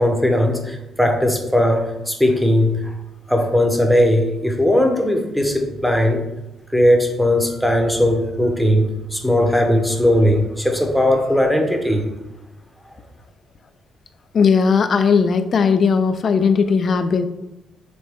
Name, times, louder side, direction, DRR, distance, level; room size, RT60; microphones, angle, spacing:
voice 1, 0.0-2.9 3.3-6.2 6.7-12.1, left 1 dB, ahead, 3 dB, 0.8 m, -18 dB
voice 2, 14.3-17.3, left 5 dB, 50° left, 10 dB, 0.3 m, -17 dB
6.3 x 2.2 x 3.5 m, 0.97 s
cardioid pair, 90°, 0 cm